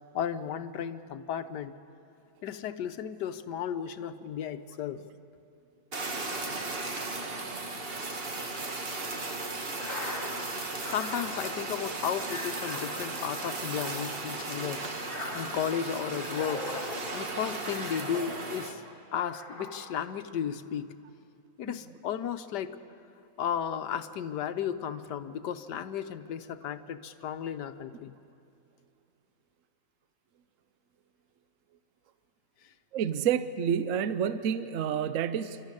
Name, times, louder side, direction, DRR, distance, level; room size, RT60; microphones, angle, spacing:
voice 1, 0.1-1.7 2.4-5.0 10.9-14.9 15.3-16.7 17.1-18.8 19.1-20.9 21.6-22.8 23.4-28.1, left 8 dB, 85° left, 10 dB, 1.4 m, -34 dB
Fire, 5.9-18.7, right 3 dB, 35° right, 1.5 m, -36 dB
sound 1, 9.7-18.8 19.2-20.2, left 2 dB, 50° left, 2.7 m, -42 dB
voice 2, 32.9-35.6, right 8 dB, 60° right, 12 dB, 0.9 m, -29 dB
27.0 x 13.0 x 9.8 m, 2.5 s
omnidirectional pair, 1.8 m